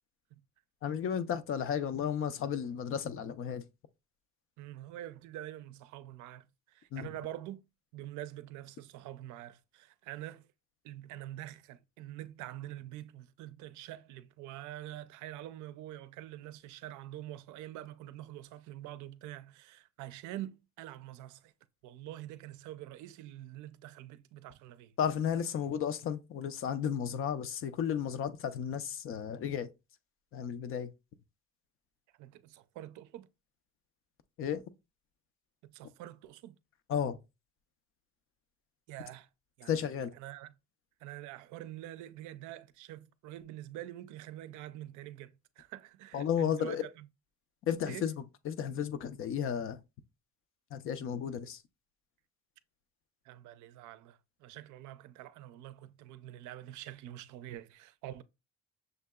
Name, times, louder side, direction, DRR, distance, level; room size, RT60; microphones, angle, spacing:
voice 1, 0.8-3.6 6.9-7.1 25.0-29.7 30.3-30.9 34.4-34.6 36.9-37.2 39.7-40.1 46.1-46.8 47.6-48.1 48.4-49.8 50.7-51.6, left 8 dB, 50° left, 0.5 m, -33 dB
voice 2, 4.6-7.6 7.9-10.5 10.8-21.5 21.8-24.9 32.2-33.3 35.7-36.6 38.9-39.3 39.6-40.5 41.0-47.1 47.8-48.1 53.2-58.2, right 13 dB, 85° right, 0.5 m, -46 dB
6.5 x 2.8 x 2.2 m
cardioid pair, 140°, 29 cm